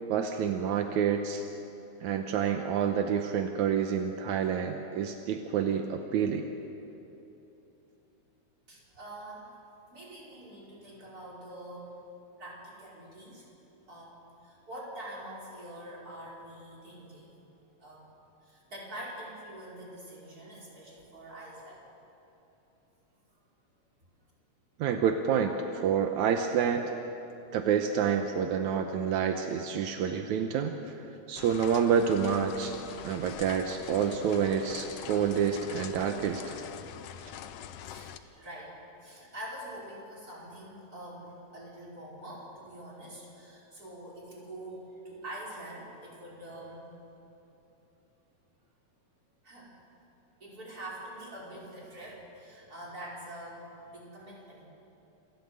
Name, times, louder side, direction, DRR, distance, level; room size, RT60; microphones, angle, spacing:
voice 1, 0.1-1.4 2.0-6.5 24.8-27.0 27.5-30.9 31.3-32.7 33.0-36.6, right 7 dB, 80° right, 5 dB, 2.3 m, -28 dB
voice 2, 8.7-9.5 9.9-11.9 12.4-13.5 13.9-17.4 17.8-18.0 18.4-21.8 37.8-46.9 49.4-49.7 50.4-54.6, right 1 dB, 30° right, -5 dB, 5.4 m, -45 dB
sound 1, 31.4-38.2, left 9 dB, 70° left, 1.7 m, -44 dB
27.0 x 15.0 x 8.2 m, 3.0 s
omnidirectional pair, 3.3 m